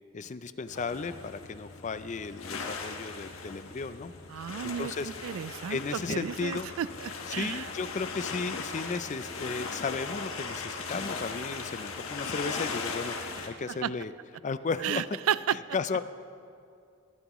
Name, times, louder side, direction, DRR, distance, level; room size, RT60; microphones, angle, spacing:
voice 1, 0.1-5.1 5.7-6.7 7.3-14.1 14.4-15.0 15.5-16.0, left 4 dB, 35° left, 12 dB, 0.4 m, -35 dB
sound 1, 0.7-13.5, left 4 dB, 80° left, 1.3 m, -38 dB
voice 2, 4.3-7.7 13.8-13.9 14.8-15.5, right 9 dB, 75° right, 17 dB, 0.3 m, -33 dB
24.5 x 11.5 x 3.1 m, 2.4 s
head